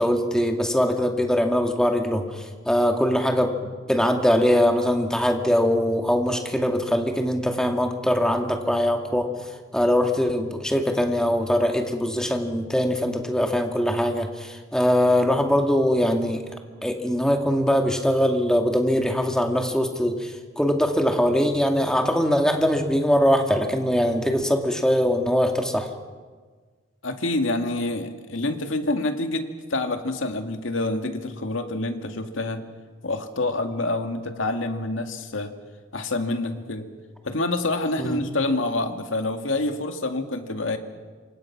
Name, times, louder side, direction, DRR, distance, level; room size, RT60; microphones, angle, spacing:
voice 1, 0.0-9.3 9.7-16.4 16.8-25.9 38.0-38.2, equal, 5° left, 3 dB, 2.2 m, -22 dB
voice 2, 27.0-32.6 33.0-35.5 35.9-36.8 37.2-40.8, left 2 dB, 75° left, 6 dB, 2.2 m, -27 dB
28.0 x 25.0 x 6.0 m, 1.5 s
head